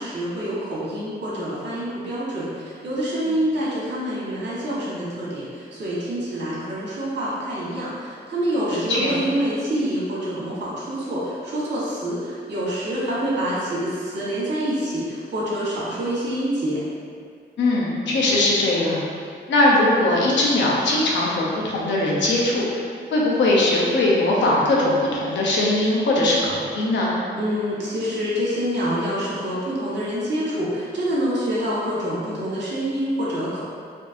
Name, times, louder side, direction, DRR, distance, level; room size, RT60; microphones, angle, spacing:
voice 1, 0.0-16.8 27.3-33.6, equal, 70° right, -8 dB, 1.4 m, -26 dB
voice 2, 8.7-9.2 17.6-19.0 19.5-22.8 23.1-27.1, left 2 dB, 85° left, -4 dB, 0.8 m, -20 dB
4.4 x 2.7 x 2.6 m, 2.2 s
cardioid pair, 90°, 19 cm